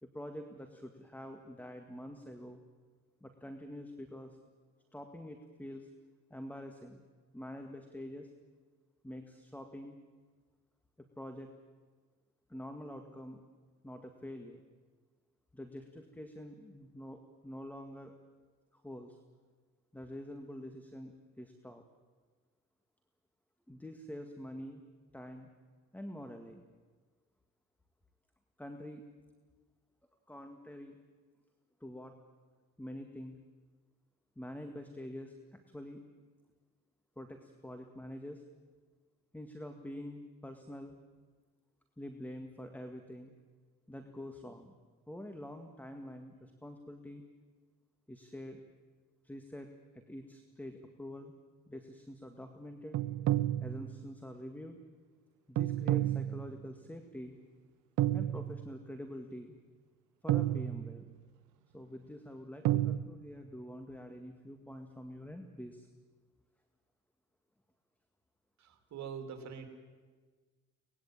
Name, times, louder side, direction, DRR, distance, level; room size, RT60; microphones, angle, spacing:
voice 1, 0.0-2.6 3.2-4.4 4.9-5.9 6.3-7.0 7.3-8.3 9.0-10.0 11.0-11.5 12.5-13.4 13.8-14.6 15.5-18.1 18.7-19.2 19.9-21.8 23.7-24.8 25.1-25.5 25.9-26.6 28.6-29.0 30.3-31.0 31.8-32.2 32.8-33.4 34.4-36.0 37.2-38.4 39.3-41.0 42.0-43.3 43.9-44.7 45.1-47.2 48.1-48.6 49.2-49.7 49.9-51.3 51.7-53.0 53.6-54.8 55.5-57.4 58.1-59.5 60.2-61.1 61.7-65.9, left 1 dB, 5° left, 6 dB, 2.0 m, -46 dB
sound 1, 52.9-54.2 55.6-56.8 58.0-58.9 60.3-61.3 62.6-63.0, right 14 dB, 85° right, 0.9 m, -31 dB
voice 2, 68.6-69.7, right 7 dB, 70° right, 6 dB, 3.1 m, -44 dB
24.0 x 20.0 x 9.0 m, 1.4 s
cardioid pair, 85°, 29 cm